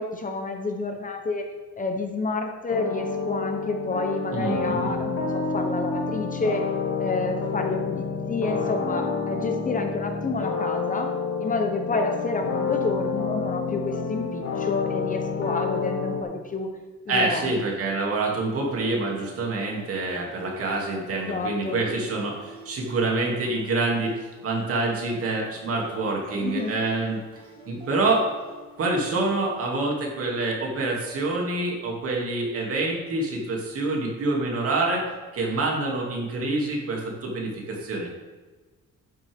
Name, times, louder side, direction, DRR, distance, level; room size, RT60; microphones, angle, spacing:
voice 1, 0.0-1.5 1.8-6.7 7.0-11.1 11.4-16.7 17.1-17.6 21.2-21.8 26.4-26.8, left 3 dB, 25° left, 4 dB, 1.0 m, -29 dB
sound 1, 2.7-16.2, left 5 dB, 65° left, 2.5 m, -29 dB
voice 2, 4.3-5.0 17.1-27.2 27.7-28.3 28.8-38.2, right 2 dB, 50° right, -1 dB, 2.7 m, -26 dB
sound 2, 18.1-29.6, equal, 20° right, 3.6 m, -47 dB
11.5 x 9.6 x 3.7 m, 1.3 s
cardioid pair, 155°, 29 cm